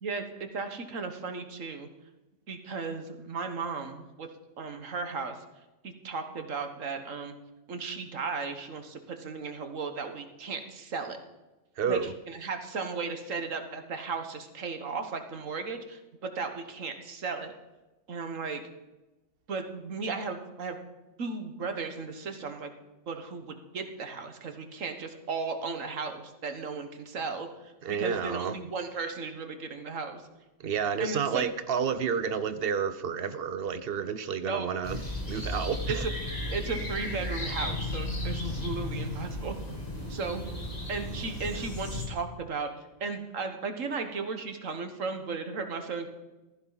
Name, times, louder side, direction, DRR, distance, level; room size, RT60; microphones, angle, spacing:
voice 1, 0.0-1.9 2.5-4.3 4.6-5.3 5.8-7.3 7.7-11.2 11.9-17.5 18.1-18.6 19.5-20.8 21.2-22.7 23.1-27.7 28.0-30.2 31.0-31.4 34.4-34.7 36.0-36.1 36.5-39.6 40.1-40.4 40.9-42.7 43.0-46.1, right 4 dB, 90° right, 6 dB, 1.8 m, -35 dB
voice 2, 11.8-12.1 27.8-28.6 30.6-36.0, right 7 dB, 55° right, 12 dB, 0.9 m, -30 dB
sound 1, 34.8-42.1, left 1 dB, 30° left, 2.7 m, -34 dB
15.0 x 14.5 x 4.1 m, 1.1 s
omnidirectional pair, 1.3 m